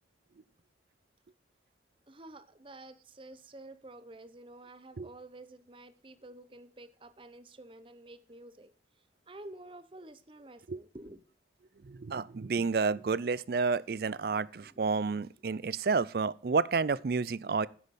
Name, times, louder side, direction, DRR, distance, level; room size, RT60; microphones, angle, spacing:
voice 1, 2.1-8.7 9.3-11.2 14.6-14.8, right 2 dB, 30° right, 0.7 m, -50 dB
voice 2, 11.8-17.7, right 4 dB, 55° right, 0.4 m, -30 dB
10.5 x 8.1 x 4.2 m
head